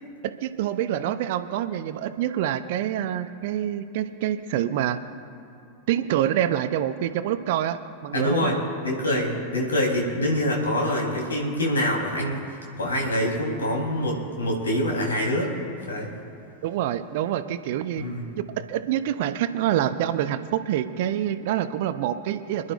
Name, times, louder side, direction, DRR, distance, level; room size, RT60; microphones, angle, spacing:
voice 1, 0.2-5.0 5.9-8.5 16.6-18.1 18.6-22.7, right 11 dB, 50° right, 11 dB, 0.6 m, -26 dB
voice 2, 8.1-12.4 12.8-15.6 15.9-16.2 18.0-18.2, left 1 dB, 70° left, -1 dB, 3.5 m, -25 dB
27.5 x 11.5 x 2.5 m, 2.8 s
figure-of-eight pair, 90°, 0 cm